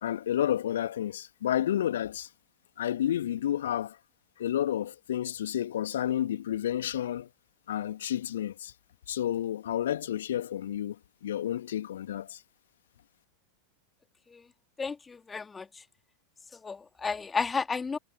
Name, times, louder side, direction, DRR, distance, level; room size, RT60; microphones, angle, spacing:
voice 1, 0.0-2.3 2.8-4.0 4.4-7.3 7.7-8.7 9.1-11.0 11.2-12.4, left 11 dB, 60° left, 2.4 m, -30 dB
voice 2, 14.8-15.7 16.6-18.0, left 5 dB, 15° left, 2.9 m, -32 dB
figure-of-eight pair, 90°, 0 cm